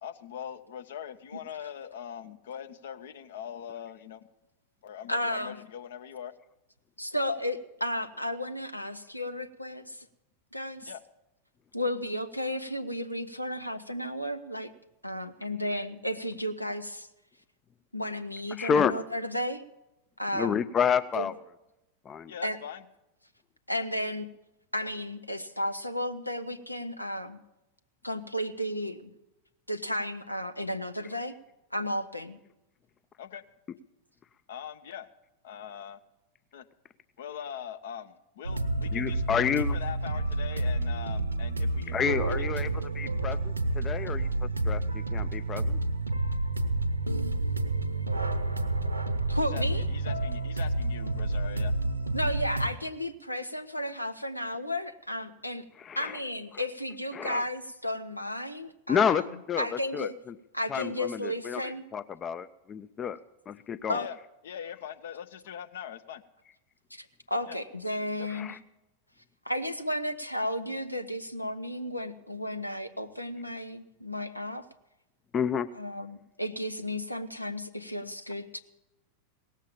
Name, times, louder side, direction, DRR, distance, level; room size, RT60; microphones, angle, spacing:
voice 1, 0.0-4.2 4.8-6.3 10.8-11.0 22.3-22.8 33.2-33.4 34.5-35.1 35.4-36.0 36.5-36.6 37.2-42.0 42.2-42.5 49.5-49.6 49.9-51.7 63.9-64.2 64.4-66.2 67.5-67.6 68.2-68.3, left 9 dB, 60° left, 10 dB, 0.8 m, -42 dB
voice 2, 5.1-5.6 7.0-10.1 10.5-10.9 11.7-14.7 15.0-17.1 17.9-19.6 20.2-20.6 21.1-21.3 22.4-22.6 23.7-24.3 24.7-27.4 28.0-29.1 29.7-31.4 31.7-32.4 49.3-49.9 52.1-55.7 56.0-60.2 60.5-61.8 63.9-64.1 66.9-68.6 69.4-74.7 75.7-78.6, left 1 dB, 85° left, 9 dB, 0.6 m, -33 dB
voice 3, 18.6-18.9 20.3-21.3 22.1-22.3 38.9-39.7 41.9-42.7 42.9-44.3 44.7-45.8 55.9-56.1 57.1-57.4 58.9-59.2 59.5-59.7 59.9-60.1 60.7-61.6 61.9-63.2 63.5-64.0 68.3-68.6 75.3-75.7, left 7 dB, 25° left, 14 dB, 0.4 m, -29 dB
sound 1, 38.4-52.7, right 2 dB, 80° right, 0.9 m, -29 dB
17.5 x 7.4 x 8.7 m, 0.95 s
figure-of-eight pair, 90°, 0 cm